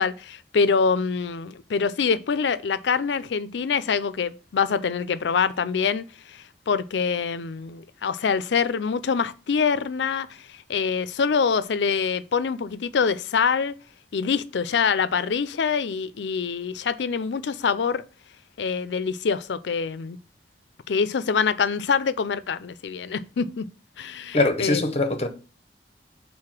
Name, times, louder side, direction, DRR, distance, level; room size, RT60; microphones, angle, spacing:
voice 1, 0.0-13.7 14.1-18.0 18.6-20.2 20.9-23.6 24.0-24.8, left 5 dB, 80° left, 0.4 m, -25 dB
voice 2, 24.3-25.3, left 2 dB, 35° left, 0.8 m, -22 dB
4.8 x 4.0 x 5.8 m
head